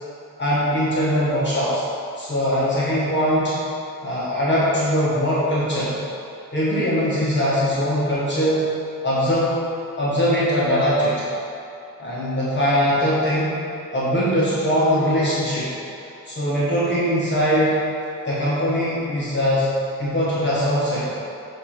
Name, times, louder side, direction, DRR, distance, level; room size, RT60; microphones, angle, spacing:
voice 1, 0.4-1.8 2.2-3.5 4.0-6.0 6.5-8.7 9.0-9.6 10.0-11.2 12.0-13.6 13.9-15.7 16.3-17.8 18.2-19.7 20.0-21.1, equal, 30° left, -9 dB, 1.3 m, -21 dB
7.5 x 3.0 x 5.7 m, 2.7 s
wide cardioid pair, 170°, 34 cm